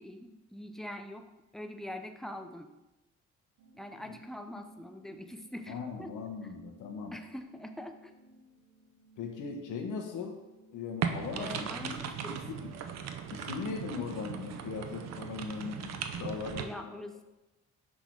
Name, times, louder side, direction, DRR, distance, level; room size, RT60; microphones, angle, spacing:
voice 1, 0.0-2.7 3.7-6.1 7.1-8.1 11.3-12.4 16.6-17.2, left 1 dB, ahead, 6 dB, 0.5 m, -43 dB
sound 1, 3.6-13.2, right 3 dB, 85° right, 1.0 m, -59 dB
voice 2, 5.7-7.2 9.2-10.4 10.7-12.0 12.3-12.7 13.3-16.9, left 5 dB, 80° left, 4 dB, 1.1 m, -39 dB
sound 2, 11.0-16.6, right 7 dB, 60° right, 0.6 m, -38 dB
6.2 x 3.8 x 4.8 m, 1.0 s
cardioid pair, 90°, 30 cm